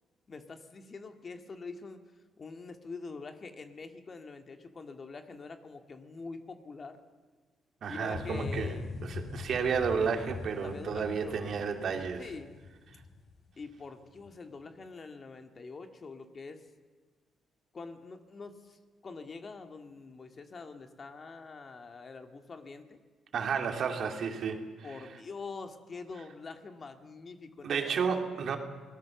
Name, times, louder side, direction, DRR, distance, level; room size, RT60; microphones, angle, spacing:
voice 1, 0.3-2.0 2.4-7.0 7.9-9.0 10.6-11.6 12.2-12.6 13.6-16.7 17.7-23.0 24.8-28.4, left 4 dB, 40° left, 6 dB, 2.1 m, -45 dB
voice 2, 7.8-8.7 9.0-12.2 23.3-24.6 27.6-28.6, right 6 dB, 60° right, 4 dB, 2.8 m, -31 dB
sound 1, 8.1-13.7 14.2-14.3, left 4 dB, 60° left, 4.7 m, -41 dB
25.5 x 19.0 x 7.2 m, 1.4 s
cardioid pair, 90°, 0 cm